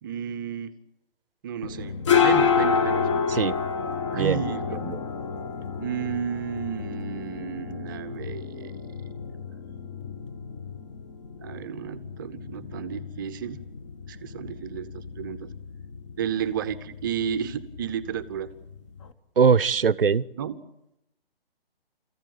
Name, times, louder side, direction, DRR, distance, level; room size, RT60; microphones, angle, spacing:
voice 1, 0.0-0.8 1.4-2.0 2.2-3.1 4.1-4.8 5.8-8.7 11.4-13.6 14.1-15.5 16.2-18.5 20.4-20.6, right 8 dB, 20° right, 12 dB, 0.8 m, -32 dB
sound 1, 1.6-19.1, left 6 dB, 30° left, 1.3 m, -30 dB
voice 2, 3.3-3.6 4.1-4.4 4.8-5.0 19.4-20.2, right 6 dB, 65° right, 21 dB, 0.8 m, -21 dB
30.0 x 15.0 x 9.0 m, 0.86 s
figure-of-eight pair, 140°, 31 cm